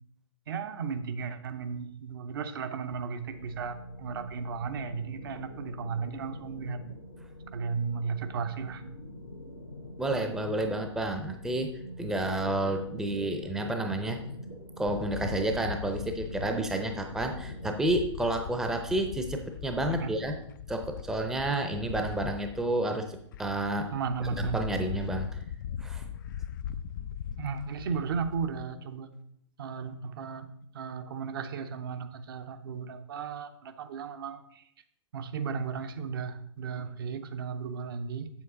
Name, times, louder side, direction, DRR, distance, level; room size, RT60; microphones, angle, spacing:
voice 1, 0.5-6.8 7.5-8.8 19.9-20.1 23.9-24.6 27.4-29.1 29.6-30.5 30.7-34.7 35.1-38.3, right 6 dB, 50° right, 8 dB, 0.7 m, -35 dB
sound 1, 3.3-17.7, left 1 dB, 80° left, 1.2 m, -45 dB
voice 2, 10.0-11.7 12.0-14.2 14.8-20.3 20.7-23.9 24.5-25.3 25.8-26.0, right 1 dB, 5° right, 5 dB, 0.6 m, -30 dB
sound 2, 14.9-28.6, left 9 dB, 45° left, 0.4 m, -40 dB
7.8 x 7.3 x 3.8 m, 0.71 s
figure-of-eight pair, 115°, 15 cm